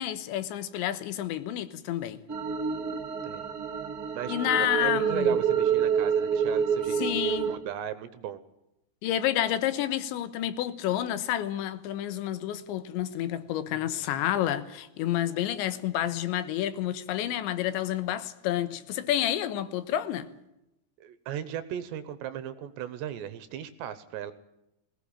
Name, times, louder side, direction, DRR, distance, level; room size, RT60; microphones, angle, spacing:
voice 1, 0.0-2.2 4.3-5.4 6.9-7.5 9.0-20.3, left 12 dB, 80° left, 3.4 m, -29 dB
sound 1, 2.3-7.6, right 7 dB, 45° right, 1.2 m, -27 dB
voice 2, 4.1-8.4 21.0-24.3, right 10 dB, 75° right, 3.0 m, -37 dB
20.5 x 17.5 x 8.7 m
omnidirectional pair, 5.3 m